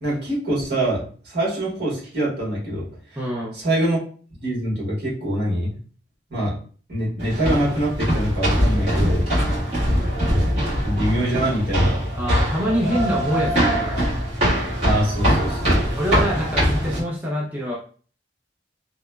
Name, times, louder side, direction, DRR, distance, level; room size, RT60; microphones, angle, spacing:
voice 1, 0.0-2.9 3.5-4.0 4.4-5.7 6.3-6.5 6.9-9.4 10.7-12.0 14.8-15.8, right 1 dB, 65° right, -5 dB, 1.3 m, -24 dB
voice 2, 3.2-3.5 10.0-10.1 12.2-14.2 16.0-17.7, equal, 10° right, -4 dB, 0.4 m, -25 dB
sound 1, 7.2-17.0, equal, 35° right, 1.3 m, -22 dB
2.8 x 2.1 x 2.2 m, 0.41 s
head